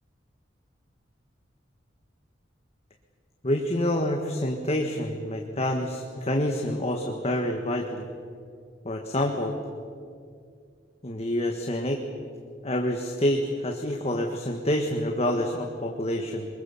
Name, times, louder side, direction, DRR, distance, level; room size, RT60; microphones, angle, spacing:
voice 1, 3.4-8.0 8.8-9.5 11.0-12.0 12.6-16.5, left 1 dB, 35° left, 2 dB, 1.6 m, -27 dB
24.0 x 22.5 x 7.2 m, 2.3 s
head